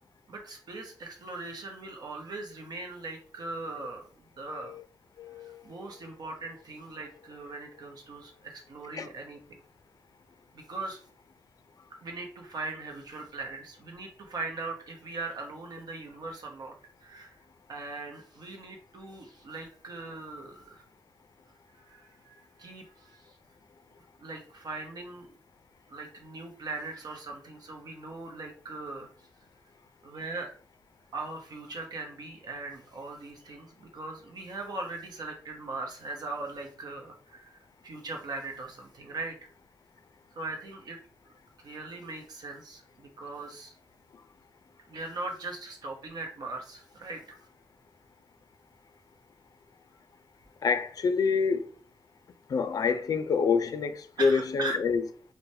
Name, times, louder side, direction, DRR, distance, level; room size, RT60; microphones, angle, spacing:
voice 1, 0.3-4.1 4.3-4.8 5.3-9.4 10.5-11.0 12.0-17.4 17.7-20.8 21.7-23.4 24.2-25.4 25.9-29.1 30.0-30.5 31.1-39.5 40.3-41.0 41.6-43.8 44.9-47.4 54.2-54.8, right 3 dB, 65° right, 0.8 m, -40 dB
voice 2, 4.5-4.8 5.2-5.6 8.9-9.1 50.6-51.7 52.5-55.0, left 5 dB, 55° left, 0.4 m, -27 dB
3.1 x 2.1 x 2.7 m
cardioid pair, 75°, 7 cm